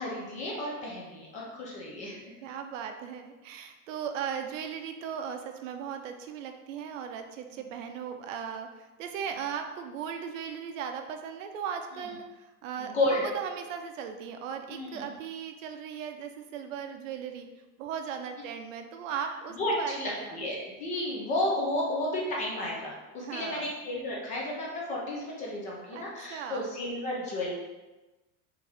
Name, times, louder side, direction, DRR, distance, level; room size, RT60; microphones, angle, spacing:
voice 1, 0.0-2.3 12.0-12.1 12.8-13.2 14.7-15.0 19.5-27.5, left 1 dB, 20° left, -3 dB, 0.5 m, -32 dB
voice 2, 2.4-17.5 17.8-20.4 23.2-23.7 25.9-26.7, right 7 dB, 65° right, 6 dB, 0.6 m, -37 dB
4.4 x 3.6 x 3.4 m, 1.1 s
supercardioid pair, 165°, 42 cm